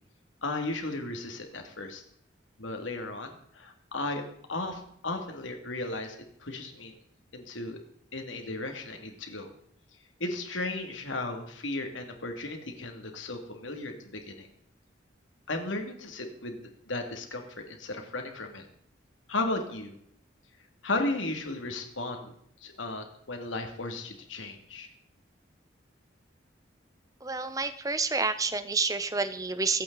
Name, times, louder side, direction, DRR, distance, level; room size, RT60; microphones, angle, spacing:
voice 1, 0.4-2.0 2.6-4.2 4.5-6.9 7.3-7.8 8.1-9.5 10.2-14.5 15.5-18.6 19.3-19.9 20.8-22.3 22.6-24.9, left 2 dB, 90° left, 4 dB, 2.5 m, -35 dB
voice 2, 27.2-29.8, right 4 dB, 20° right, 11 dB, 0.8 m, -29 dB
24.5 x 8.8 x 4.1 m, 0.68 s
head